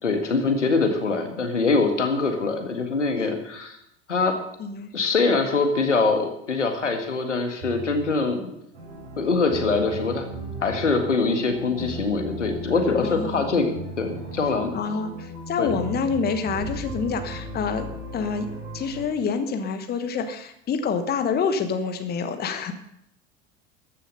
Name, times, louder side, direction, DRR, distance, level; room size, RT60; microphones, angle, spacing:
voice 1, 0.0-3.8 4.1-4.4 4.9-8.5 9.2-10.3 10.6-13.7 14.0-14.7 15.6-15.8, left 4 dB, 80° left, 5 dB, 1.8 m, -23 dB
voice 2, 4.6-4.9 13.0-13.4 14.7-18.5 18.7-22.7, left 5 dB, 25° left, 8 dB, 1.2 m, -27 dB
sound 1, 7.6-8.1 9.1-9.2 9.5-11.2 13.4-13.5 13.7-14.4 15.6-17.4, right 8 dB, 50° right, 4.8 m, -38 dB
sound 2, 8.7-19.1, left 1 dB, 70° right, 6.0 m, -37 dB
14.0 x 10.0 x 5.5 m, 0.76 s
figure-of-eight pair, 75°, 36 cm